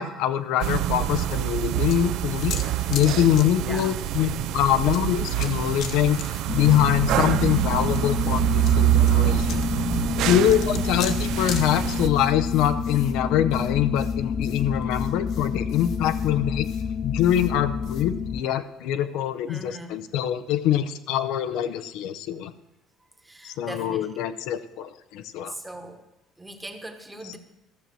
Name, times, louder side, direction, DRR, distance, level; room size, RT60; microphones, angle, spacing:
voice 1, 0.0-2.6 2.9-6.2 6.5-9.7 10.2-16.7 17.0-22.5 23.4-25.5, left 10 dB, 70° left, 10 dB, 0.7 m, -24 dB
sound 1, 0.6-12.1, right 14 dB, 60° right, 0.4 m, -25 dB
sound 2, 0.9-18.0, left 7 dB, 50° left, 1.1 m, -42 dB
voice 2, 3.6-4.0 19.4-20.0 23.2-24.1 25.4-26.0 26.4-27.4, right 1 dB, 5° right, 5 dB, 1.2 m, -39 dB
sound 3, 6.5-18.4, left 6 dB, 25° left, 0.3 m, -29 dB
13.5 x 6.7 x 7.6 m, 0.96 s
cardioid pair, 165°, 0 cm